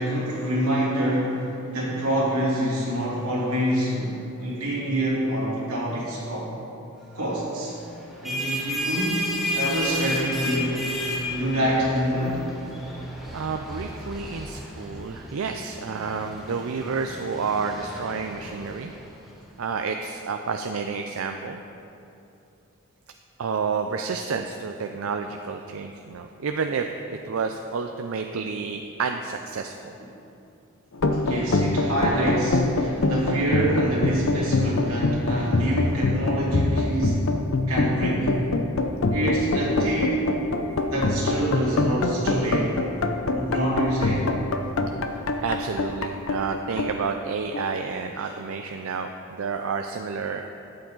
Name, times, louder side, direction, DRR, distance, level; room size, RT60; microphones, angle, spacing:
voice 1, 0.0-6.5 7.1-7.7 8.2-10.9 11.3-12.5 31.1-37.2 37.7-38.3 39.1-40.3 40.9-42.8 43.3-44.4 48.2-48.3, right 1 dB, 90° right, -5 dB, 2.8 m, -26 dB
sound 1, 8.0-19.3, left 1 dB, ahead, 1.5 m, -32 dB
voice 2, 13.3-18.9 19.6-21.6 23.4-29.9 45.4-50.5, right 5 dB, 70° right, 5 dB, 0.4 m, -30 dB
sound 2, 30.9-47.8, left 2 dB, 65° left, 0.6 m, -25 dB
13.0 x 8.6 x 3.9 m, 2.8 s
head